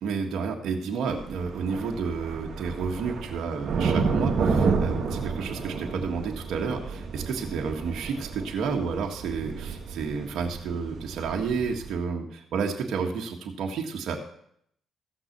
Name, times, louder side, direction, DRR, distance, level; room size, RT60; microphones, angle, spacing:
voice 1, 0.0-14.2, right 5 dB, 75° right, 1 dB, 1.6 m, -31 dB
sound 1, 1.1-11.9, right 4 dB, 55° right, 2.3 m, -30 dB
15.0 x 6.1 x 6.7 m, 0.71 s
cardioid pair, 90°, 0 cm